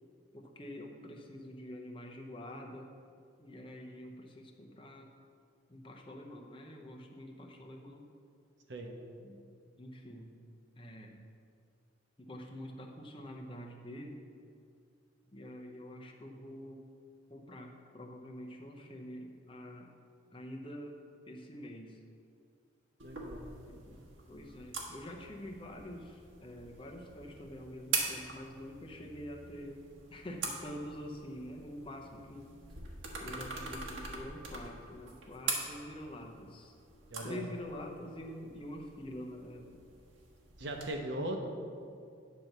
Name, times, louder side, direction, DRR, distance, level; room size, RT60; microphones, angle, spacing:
voice 1, 0.3-2.9 3.4-5.1 5.7-8.1 9.2-9.4 9.8-10.4 10.8-11.2 12.2-14.2 15.3-16.8 17.3-19.9 20.3-22.0 23.6-29.8 30.1-32.5 33.2-36.7 37.2-39.8, equal, 25° left, 2 dB, 0.7 m, -46 dB
voice 2, 23.0-23.5 37.1-37.4 40.6-41.4, right 1 dB, 65° right, 3 dB, 1.0 m, -38 dB
sound 1, 23.0-40.9, right 4 dB, 80° right, 1.4 m, -43 dB
9.4 x 4.4 x 6.6 m, 2.3 s
head